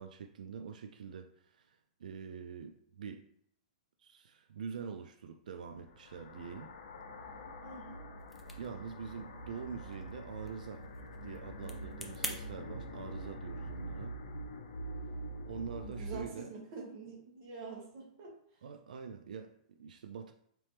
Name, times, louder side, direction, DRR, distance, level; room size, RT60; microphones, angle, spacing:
voice 1, 0.0-3.2 4.0-6.7 8.6-10.9 11.2-14.1 15.4-16.5 18.6-20.3, right 6 dB, 90° right, 6 dB, 0.3 m, -45 dB
sound 1, 5.7-16.2, right 1 dB, 85° left, 0.5 m, -45 dB
voice 2, 7.6-8.0 15.8-18.3, right 4 dB, 35° right, -2 dB, 1.4 m, -46 dB
sound 2, 8.2-12.4, equal, ahead, 0.4 m, -47 dB
4.1 x 3.0 x 3.3 m, 0.69 s
hypercardioid pair, 160°, 4 cm